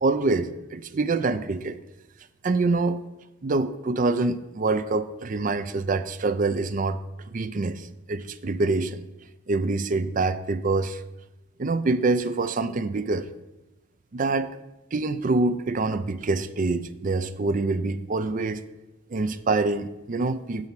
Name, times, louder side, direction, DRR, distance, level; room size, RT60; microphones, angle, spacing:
voice 1, 0.0-1.8 2.4-3.0 3.4-7.0 7.3-9.0 9.5-11.0 11.6-13.3 14.1-14.5 14.9-18.6 19.1-20.7, right 3 dB, 40° right, 12 dB, 0.4 m, -25 dB
8.9 x 4.4 x 7.4 m, 0.99 s
head